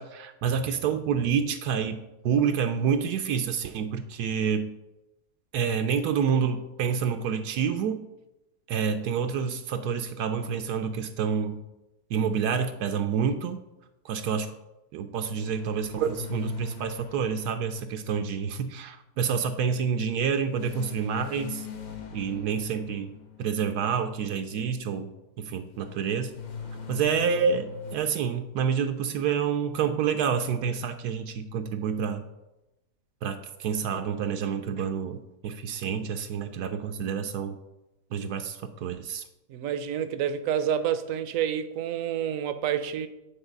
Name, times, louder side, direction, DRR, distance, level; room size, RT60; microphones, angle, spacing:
voice 1, 0.0-2.0 2.2-4.7 5.5-8.0 8.7-11.6 12.1-13.6 14.0-14.5 14.9-21.7 22.1-23.1 23.4-25.1 25.4-26.4 26.9-32.2 33.2-37.5 38.1-39.2, right 7 dB, 80° right, 1.2 m, -28 dB
sound 1, 15.4-18.9 20.5-23.6 25.7-28.0, left 5 dB, 50° left, 0.5 m, -41 dB
voice 2, 39.5-43.1, right 9 dB, 65° right, 0.9 m, -28 dB
8.9 x 4.1 x 5.3 m
omnidirectional pair, 1.7 m